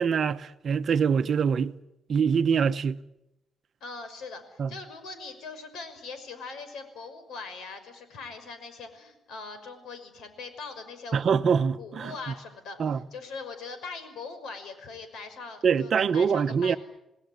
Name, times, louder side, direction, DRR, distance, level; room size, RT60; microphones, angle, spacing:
voice 1, 0.0-1.8 2.1-3.0 4.6-4.7 11.1-12.3 12.8-13.0 15.6-16.8, right 6 dB, 45° right, 1.0 m, -24 dB
voice 2, 3.8-11.2 11.5-16.8, left 4 dB, 75° left, 5.9 m, -41 dB
28.5 x 19.5 x 9.7 m
cardioid pair, 140°, 0 cm